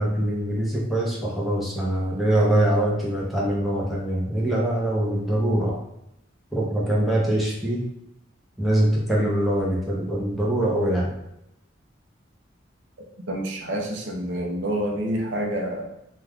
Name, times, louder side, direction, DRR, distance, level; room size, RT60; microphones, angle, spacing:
voice 1, 0.0-5.8 6.5-7.8 8.6-11.1, right 1 dB, ahead, -5 dB, 0.6 m, -23 dB
voice 2, 13.3-15.9, right 1 dB, 70° right, 0 dB, 0.5 m, -28 dB
2.4 x 2.2 x 3.4 m, 0.82 s
head